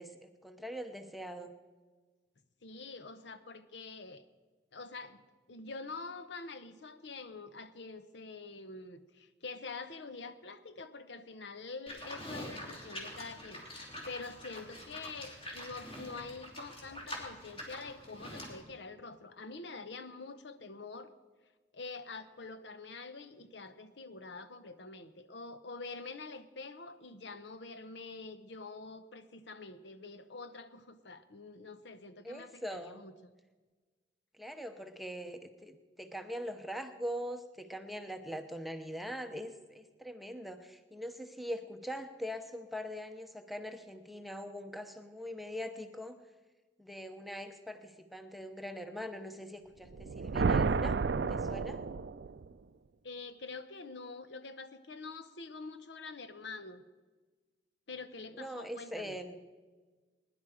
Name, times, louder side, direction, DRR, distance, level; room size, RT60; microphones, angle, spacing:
voice 1, 0.0-1.5 32.2-33.0 34.3-46.2 46.8-51.0 51.3-51.8 58.3-59.4, equal, ahead, 7 dB, 0.8 m, -42 dB
voice 2, 2.6-4.2 4.7-5.2 5.5-21.1 21.7-33.3 53.0-56.8 57.9-59.2, left 3 dB, 75° left, 11 dB, 0.9 m, -46 dB
Livestock farm animals working animals, 11.9-18.6, equal, 30° left, 3.0 m, -45 dB
sound 1, 49.9-52.5, right 4 dB, 70° right, 0.4 m, -31 dB
21.0 x 10.5 x 5.0 m, 1.3 s
head